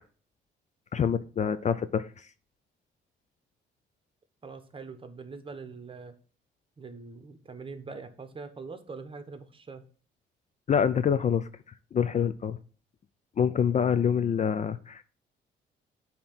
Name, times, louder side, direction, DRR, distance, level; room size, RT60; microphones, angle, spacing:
voice 1, 0.9-2.1 10.7-11.5 11.9-12.6 13.4-15.0, left 7 dB, 35° left, 13 dB, 0.4 m, -26 dB
voice 2, 4.4-6.1 6.8-9.8, right 4 dB, 25° right, 9 dB, 1.0 m, -43 dB
8.5 x 2.9 x 6.0 m, 0.42 s
cardioid pair, 90°, 20 cm